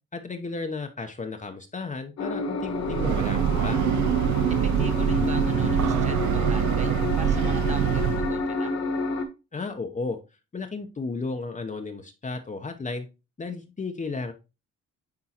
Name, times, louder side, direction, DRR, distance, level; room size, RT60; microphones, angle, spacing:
voice 1, 0.1-3.8 9.5-10.2 10.5-13.1 13.4-14.3, left 3 dB, 25° left, 5 dB, 0.8 m, -33 dB
sound 1, 2.2-9.3, left 3 dB, 55° left, 1.5 m, -29 dB
Breathing / Train, 2.7-8.5, right 10 dB, 70° right, 0.4 m, -24 dB
voice 2, 4.5-8.7, right 3 dB, 25° right, 5 dB, 1.3 m, -41 dB
9.7 x 3.7 x 2.9 m, 0.28 s
cardioid pair, 90°, 30 cm